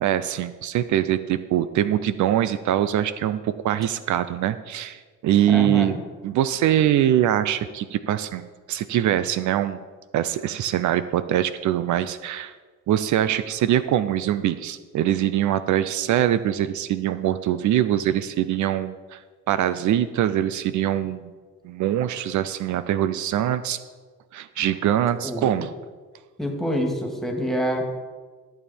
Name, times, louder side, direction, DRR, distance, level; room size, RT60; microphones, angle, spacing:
voice 1, 0.0-6.0 6.2-9.8 10.1-12.5 12.9-19.2 19.5-21.3 21.6-23.8 24.3-25.7, right 11 dB, 70° right, 13 dB, 0.5 m, -23 dB
voice 2, 5.5-6.0 25.2-25.7 26.4-27.8, equal, ahead, 1 dB, 2.1 m, -26 dB
14.0 x 7.1 x 4.3 m, 1.4 s
cardioid pair, 90°, 30 cm